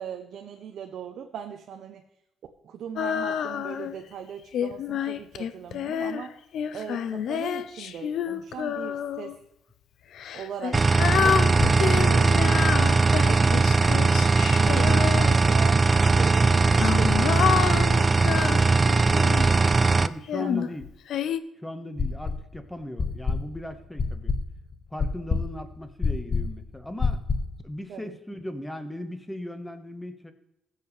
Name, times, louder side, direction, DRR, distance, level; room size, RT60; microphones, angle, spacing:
voice 1, 0.0-2.0 2.6-6.4 6.7-9.4 10.3-10.8 11.1-14.2 14.5-18.0 20.4-20.7 27.9-28.1, right 8 dB, 70° right, 5 dB, 0.8 m, -39 dB
Female singing, 3.0-4.0 4.5-9.4 10.1-15.7 16.5-19.6 20.3-21.4, left 8 dB, 70° left, 0.6 m, -29 dB
sound 1, 10.7-20.1, right 3 dB, 30° right, 0.4 m, -20 dB
voice 2, 19.0-19.4 20.0-20.8 21.6-24.3 24.9-27.2 27.6-30.3, left 1 dB, 5° left, 8 dB, 1.3 m, -37 dB
sound 2, 22.0-22.6 23.0-27.6, left 4 dB, 35° left, 0.9 m, -27 dB
16.0 x 7.5 x 3.3 m, 0.88 s
cardioid pair, 90°, 0 cm